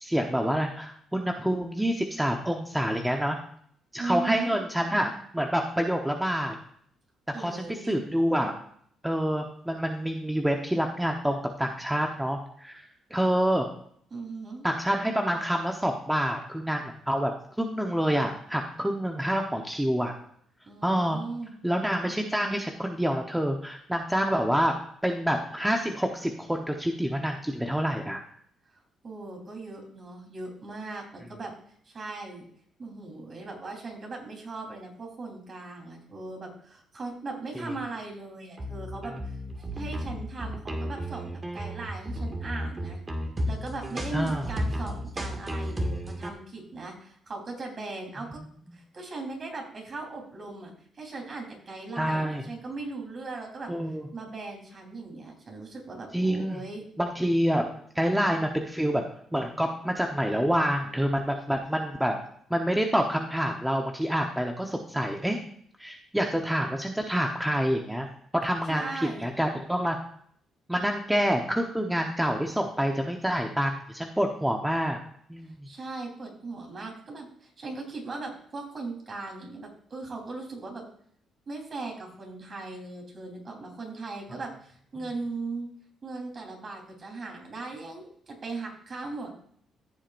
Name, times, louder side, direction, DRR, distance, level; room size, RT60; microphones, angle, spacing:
voice 1, 0.0-3.4 3.9-6.5 7.4-8.6 9.0-12.8 13.1-13.7 14.6-17.3 17.6-20.1 20.8-21.2 21.6-24.7 25.0-28.2 37.5-37.7 44.1-44.5 48.4-48.5 52.0-52.4 53.7-54.1 56.1-56.6 57.0-57.7 57.9-59.0 59.3-62.2 62.5-65.4 65.8-68.1 68.3-70.0 70.7-75.0 75.3-75.7, equal, 5° right, 2 dB, 1.1 m, -27 dB
voice 2, 4.0-4.5 7.3-8.0 14.1-14.6 20.7-21.5 29.0-31.5 31.8-32.5 32.8-39.4 39.7-43.0 43.4-48.4 48.7-53.7 54.1-56.9 68.7-69.3 75.4-80.8 81.5-85.7 86.0-89.3, right 3 dB, 40° right, 1 dB, 3.8 m, -38 dB
sound 1, 38.6-46.3, equal, 25° right, 2.1 m, -33 dB
15.0 x 7.4 x 2.6 m, 0.63 s
cardioid pair, 90°, 0 cm